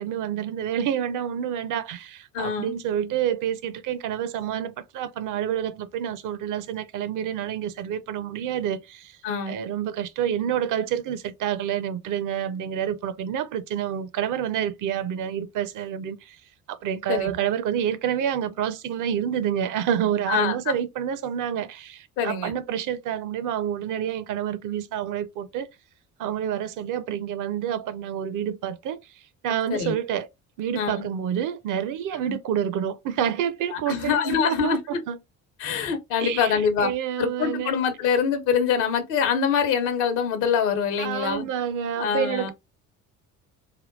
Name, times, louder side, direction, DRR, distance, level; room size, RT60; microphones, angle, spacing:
voice 1, 0.0-9.2 9.5-16.4 16.7-25.7 26.2-29.1 29.4-30.3 30.6-35.2 36.2-37.7 41.0-42.5, right 9 dB, 45° right, 0.5 m, -28 dB
voice 2, 2.3-2.8 9.2-9.6 17.1-17.4 20.3-20.5 22.2-22.5 29.7-29.9 30.7-31.0 32.3-32.4 33.7-35.0 35.6-36.9 37.2-41.5 42.0-42.5, left 7 dB, 70° left, 0.9 m, -24 dB
3.5 x 2.2 x 2.5 m
figure-of-eight pair, 50°, 44 cm